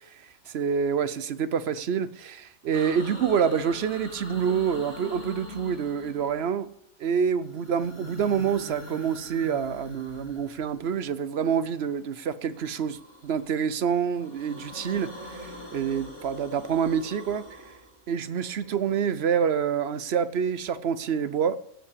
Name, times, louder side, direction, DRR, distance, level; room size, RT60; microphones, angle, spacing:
voice 1, 0.5-6.7 7.0-17.6 18.1-21.6, right 7 dB, 55° right, 0.8 m, -27 dB
sound 1, 2.7-6.7 7.4-11.1 12.5-13.7 14.0-19.0, left 1 dB, 55° left, 2.6 m, -43 dB
17.0 x 5.7 x 8.4 m
omnidirectional pair, 1.4 m